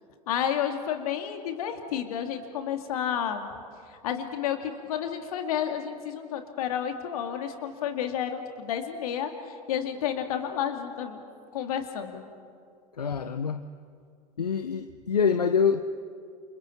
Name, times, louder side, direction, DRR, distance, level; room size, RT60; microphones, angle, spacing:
voice 1, 0.3-3.5 3.9-11.2 11.5-12.2, left 9 dB, 70° left, 6 dB, 2.3 m, -31 dB
voice 2, 13.0-13.6 14.4-15.8, left 6 dB, 85° left, 10 dB, 0.7 m, -25 dB
29.0 x 27.0 x 4.5 m, 2.4 s
hypercardioid pair, 85°, 20 cm